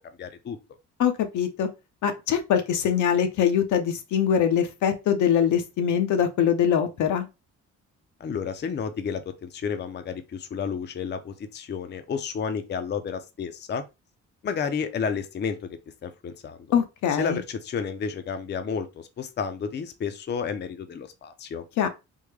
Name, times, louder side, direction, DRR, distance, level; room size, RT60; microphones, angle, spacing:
voice 1, 0.2-0.6 8.2-13.8 14.4-15.7 16.0-16.7 17.2-21.6, left 6 dB, 35° left, 0.5 m, -31 dB
voice 2, 1.0-1.7 2.0-7.3 16.7-17.4 21.8-21.9, left 8 dB, 75° left, 0.7 m, -23 dB
3.6 x 2.1 x 3.2 m
cardioid pair, 90°, 30 cm